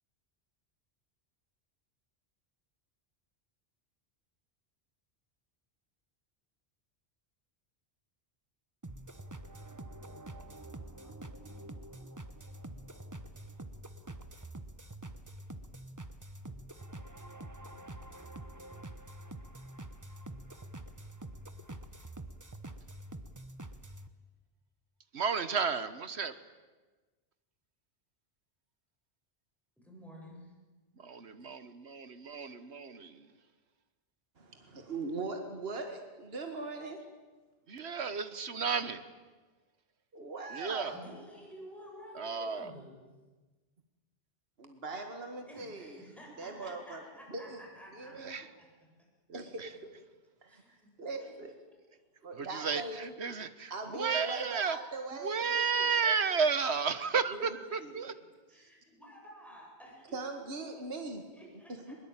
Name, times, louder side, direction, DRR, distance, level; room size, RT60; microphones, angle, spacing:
sound 1, 8.8-24.1, right 1 dB, 20° right, 1.1 m, -46 dB
voice 1, 25.1-26.3 31.0-33.3 37.7-39.1 40.5-40.9 42.1-42.7 48.1-48.5 49.3-49.7 52.3-54.8 55.2-58.1, right 5 dB, 80° right, 12 dB, 1.5 m, -33 dB
voice 2, 29.8-30.5 40.9-43.0 45.5-48.5 49.4-49.8 50.5-50.9 51.2-51.6 57.0-57.8 58.1-58.2 58.5-62.0, equal, ahead, -2 dB, 7.5 m, -52 dB
voice 3, 34.4-37.0 40.1-41.0 44.6-46.0 46.4-47.0 47.3-47.6 47.9-48.4 49.3-49.7 50.4-51.5 52.2-53.1 53.7-55.9 57.3-58.0 58.5-58.7 60.1-61.2 61.9-62.0, right 3 dB, 65° right, 5 dB, 2.1 m, -40 dB
22.0 x 21.5 x 8.9 m, 1.3 s
omnidirectional pair, 1.1 m